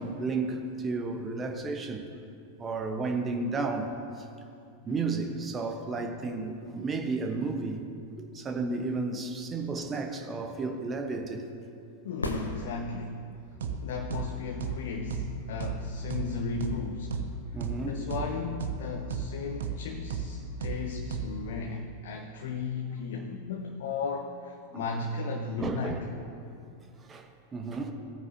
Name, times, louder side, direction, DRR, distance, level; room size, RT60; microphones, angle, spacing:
voice 1, 0.0-2.1 2.6-3.9 4.8-7.8 8.2-11.4 17.5-18.0 24.7-24.8 25.6-26.0 27.0-27.3 27.5-27.9, right 3 dB, 20° right, 5 dB, 1.1 m, -32 dB
voice 2, 12.0-13.3 13.8-17.3 17.8-26.1, left 4 dB, 55° left, 4 dB, 0.7 m, -35 dB
sound 1, 12.2-13.3 17.2-17.3, left 1 dB, 80° left, 1.0 m, -35 dB
sound 2, 13.6-13.8 14.1-14.3 14.6-14.8 15.1-15.3 15.6-15.8 16.1-16.3 16.6-16.8 17.1-17.3 17.6-17.8 18.1-18.3 18.6-18.8 19.1-19.3 19.6-19.8 20.1-20.3 20.6-20.8 21.1-21.3, right 8 dB, 60° right, 0.8 m, -33 dB
18.0 x 9.3 x 2.8 m, 2.5 s
figure-of-eight pair, 90°, 0 cm